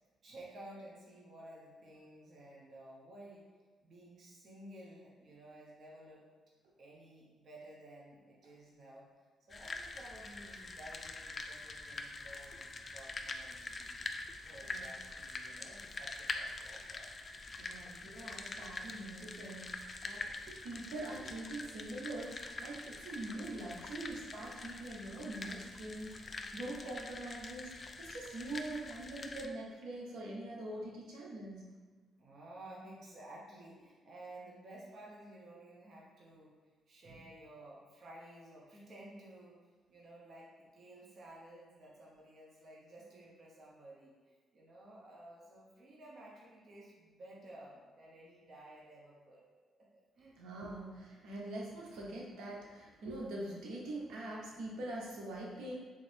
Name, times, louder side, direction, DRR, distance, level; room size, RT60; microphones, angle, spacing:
voice 1, 0.0-3.5 3.8-6.3 6.8-9.1 9.5-13.9 14.4-17.1 32.2-36.5 36.9-39.6 39.9-49.5 49.8-50.4, right 1 dB, 50° right, -4 dB, 0.8 m, -54 dB
sound 1, 9.5-29.5, left 3 dB, 35° left, 0.3 m, -45 dB
voice 2, 17.6-19.7 20.0-31.7 50.4-55.7, right 1 dB, 80° right, -3 dB, 0.7 m, -44 dB
3.8 x 2.6 x 3.3 m, 1.4 s
cardioid pair, 90°, 0 cm